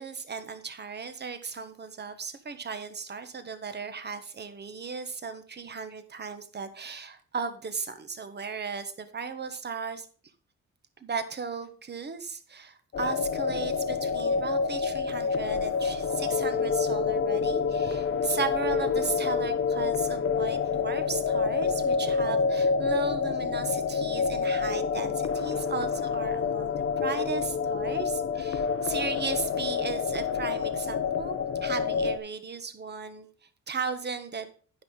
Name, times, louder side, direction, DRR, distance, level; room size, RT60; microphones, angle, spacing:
voice 1, 0.0-10.1 11.0-31.4 31.6-33.3 33.7-34.5, right 5 dB, 35° right, 10 dB, 1.3 m, -36 dB
sound 1, 12.9-32.2, left 5 dB, 45° left, 0.8 m, -28 dB
9.5 x 5.7 x 5.3 m, 0.42 s
cardioid pair, 90°, 30 cm